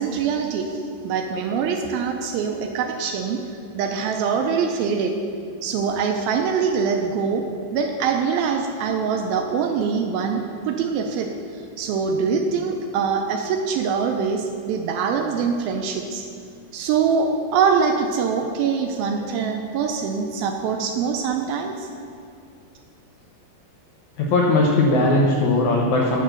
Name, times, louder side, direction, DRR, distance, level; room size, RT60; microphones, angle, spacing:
voice 1, 0.0-3.4 3.7-5.1 5.6-7.4 7.7-11.3 11.8-16.3 16.7-21.9, right 6 dB, 85° right, 4 dB, 2.2 m, -23 dB
voice 2, 24.2-26.2, left 2 dB, 80° left, -2 dB, 1.7 m, -19 dB
9.4 x 6.6 x 6.3 m, 2.4 s
omnidirectional pair, 4.6 m